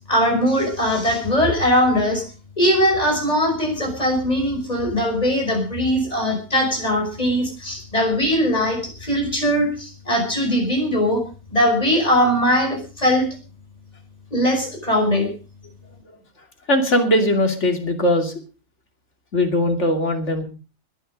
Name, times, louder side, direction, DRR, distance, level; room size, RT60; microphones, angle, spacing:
voice 1, 0.1-2.2 2.6-11.2 11.5-13.3 14.3-15.3, equal, 25° left, 2 dB, 5.8 m, -20 dB
voice 2, 16.7-18.4 19.3-20.4, left 1 dB, 55° left, 4 dB, 3.1 m, -20 dB
20.5 x 10.0 x 5.2 m, 0.36 s
omnidirectional pair, 1.4 m